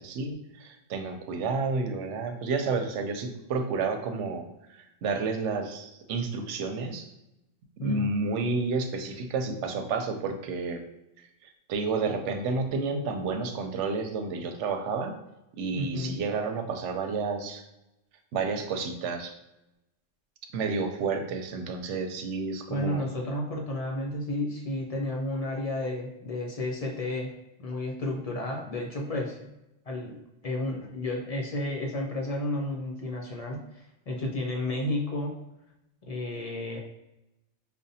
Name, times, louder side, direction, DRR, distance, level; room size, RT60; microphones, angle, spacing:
voice 1, 0.0-7.1 7.8-10.8 11.4-15.2 15.6-17.6 18.3-19.3 20.5-23.1, right 4 dB, 85° right, 5 dB, 0.9 m, -30 dB
voice 2, 7.8-8.1 15.7-16.2 22.7-27.3 27.6-29.5 29.9-35.3 36.0-36.8, left 1 dB, 50° left, -1 dB, 0.4 m, -32 dB
5.1 x 2.0 x 2.6 m, 0.89 s
omnidirectional pair, 1.2 m